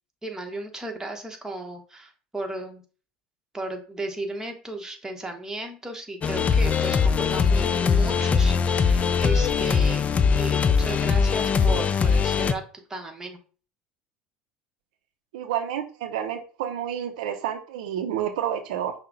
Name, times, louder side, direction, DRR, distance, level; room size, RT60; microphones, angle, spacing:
voice 1, 0.2-2.8 3.5-10.0 10.4-12.6 12.9-13.4, right 2 dB, 15° right, 3 dB, 1.0 m, -35 dB
sound 1, 6.2-12.5, left 6 dB, 30° left, 0.4 m, -21 dB
voice 2, 15.3-18.9, right 10 dB, 80° right, 7 dB, 0.5 m, -29 dB
5.5 x 2.1 x 3.8 m, 0.39 s
hypercardioid pair, 75°, 4 cm